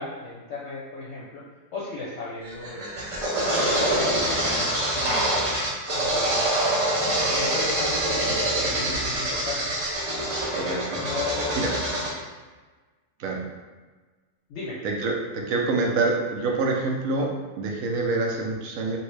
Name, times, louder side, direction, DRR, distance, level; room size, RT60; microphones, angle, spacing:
voice 1, 0.0-1.4 1.7-3.3 3.8-5.1 5.9-6.5 7.1-10.0 11.0-11.6 14.5-14.8, left 3 dB, 65° left, -6 dB, 0.8 m, -35 dB
sound 1, 2.4-12.1, right 1 dB, 40° right, 0.5 m, -25 dB
voice 2, 10.5-11.0 11.5-11.7 13.2-13.4 14.8-19.0, right 3 dB, 85° right, 1 dB, 1.0 m, -26 dB
2.9 x 2.7 x 3.1 m, 1.3 s
omnidirectional pair, 1.4 m